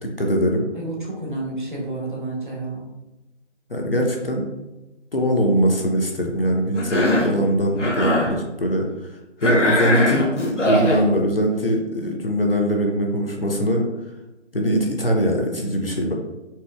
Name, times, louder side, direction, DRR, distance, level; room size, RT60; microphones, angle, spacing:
voice 1, 0.0-0.7 3.7-4.5 5.1-9.1 9.4-13.9 14.5-16.1, equal, 50° left, 1 dB, 0.5 m, -21 dB
voice 2, 0.7-2.9, right 2 dB, 40° right, -4 dB, 0.7 m, -30 dB
Cough, 6.8-7.4 7.7-8.3 9.4-11.0, left 1 dB, 75° left, 0.9 m, -21 dB
4.2 x 2.0 x 2.2 m, 1.0 s
figure-of-eight pair, 170°, 37 cm